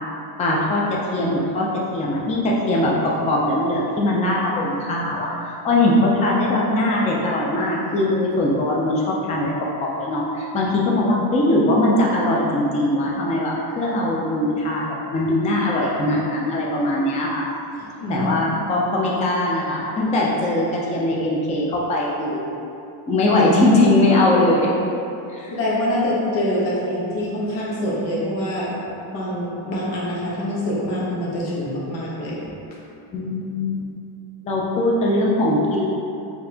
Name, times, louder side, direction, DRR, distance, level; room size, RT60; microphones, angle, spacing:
voice 1, 0.4-9.5 9.8-14.8 15.1-17.4 18.1-22.5 23.1-24.7 25.3-25.5 33.1-33.9 34.4-35.9, left 1 dB, 15° left, -3 dB, 0.3 m, -21 dB
voice 2, 17.8-18.6 25.5-28.7 29.1-32.4, left 1 dB, 85° left, -6 dB, 1.1 m, -25 dB
3.9 x 2.8 x 2.7 m, 2.7 s
cardioid pair, 130°, 44 cm